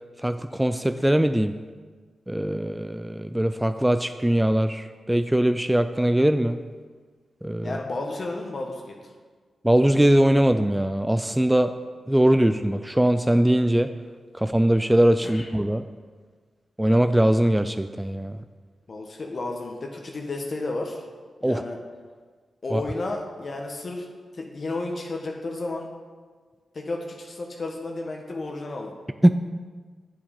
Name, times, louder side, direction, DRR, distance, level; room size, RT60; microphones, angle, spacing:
voice 1, 0.2-1.5 2.3-6.6 7.4-7.8 9.6-11.7 12.1-13.9 14.4-15.8 16.8-18.4 21.4-21.6 22.7-22.8 29.2-29.3, right 1 dB, 10° right, 10 dB, 0.4 m, -21 dB
voice 2, 7.6-8.9 15.2-15.5 18.9-21.0 21.4-21.8 22.6-24.0 24.4-25.9 26.7-28.9, left 2 dB, 55° left, 1 dB, 1.1 m, -32 dB
7.8 x 6.9 x 5.2 m, 1.5 s
supercardioid pair, 45°, 0 cm